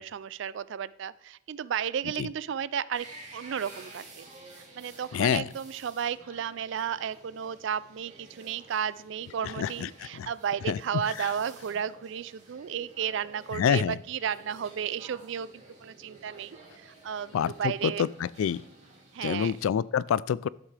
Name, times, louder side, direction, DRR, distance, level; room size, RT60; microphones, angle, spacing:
voice 1, 0.0-4.3 4.6-18.1 19.1-19.5, right 8 dB, 65° right, 18 dB, 0.3 m, -33 dB
sound 1, 2.9-19.7, right 2 dB, 35° right, 2.8 m, -52 dB
voice 2, 5.1-5.5 9.4-10.3 10.7-11.3 13.5-14.0 17.3-18.6 19.2-20.5, left 8 dB, 80° left, 21 dB, 0.3 m, -28 dB
12.5 x 7.4 x 3.3 m, 0.81 s
head